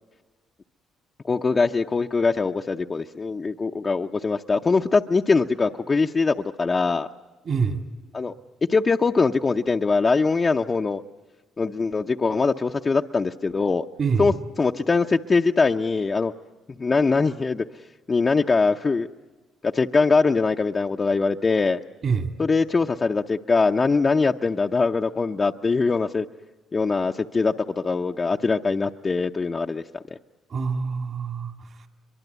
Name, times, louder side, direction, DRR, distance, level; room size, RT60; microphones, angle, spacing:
voice 1, 1.3-7.1 8.1-8.3 8.7-11.0 11.6-13.9 14.2-14.3 14.6-16.3 16.8-17.6 18.1-19.1 19.6-21.8 22.4-26.3 26.7-30.0, left 4 dB, 30° left, 3 dB, 0.7 m, -22 dB
voice 2, 7.5-7.8 14.0-14.3 22.0-22.3 30.5-31.9, right 5 dB, 50° right, 7 dB, 2.4 m, -26 dB
23.5 x 23.0 x 8.1 m, 1.2 s
cardioid pair, 95°, 0 cm